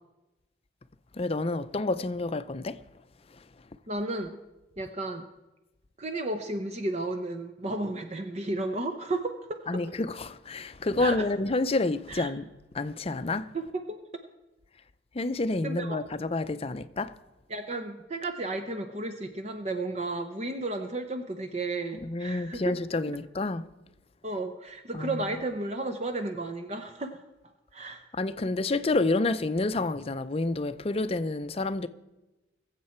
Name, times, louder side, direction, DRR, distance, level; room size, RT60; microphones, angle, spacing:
voice 1, 1.1-2.8 9.7-12.5 12.7-13.5 15.1-17.1 22.0-23.7 24.9-25.3 28.1-31.9, left 2 dB, 35° left, 0.5 m, -29 dB
voice 2, 3.9-4.4 4.8-5.3 6.0-9.6 11.0-11.3 12.1-12.3 13.5-14.0 15.6-16.0 17.5-22.6 24.2-27.2 27.7-28.0, right 2 dB, 35° right, 0.7 m, -33 dB
22.5 x 7.6 x 4.4 m
head